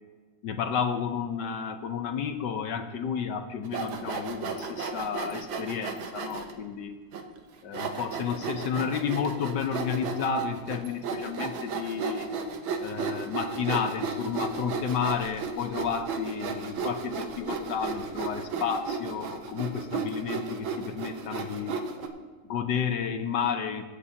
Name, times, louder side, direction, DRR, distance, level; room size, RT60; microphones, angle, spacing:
voice 1, 0.4-7.0 7.6-12.3 12.8-21.8 22.5-23.8, left 7 dB, 65° left, 6 dB, 1.3 m, -31 dB
Sawing, 3.6-6.5 7.1-7.2 7.7-22.1, right 5 dB, 80° right, 1.8 m, -34 dB
24.0 x 8.3 x 2.9 m, 1.4 s
omnidirectional pair, 2.2 m